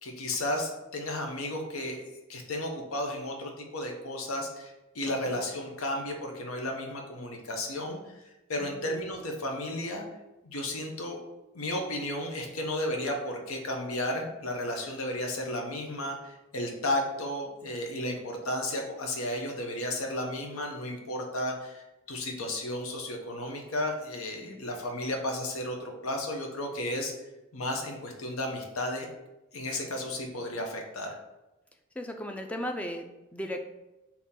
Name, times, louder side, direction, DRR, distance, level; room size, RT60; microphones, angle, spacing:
voice 1, 0.0-2.0 2.3-8.0 8.5-10.0 10.4-11.2 11.5-27.1 27.5-29.1 29.5-31.2, left 1 dB, 85° left, 2 dB, 0.8 m, -33 dB
voice 2, 32.0-33.1 33.3-33.6, left 1 dB, 5° left, 5 dB, 0.3 m, -36 dB
3.7 x 2.9 x 4.1 m, 1.0 s
head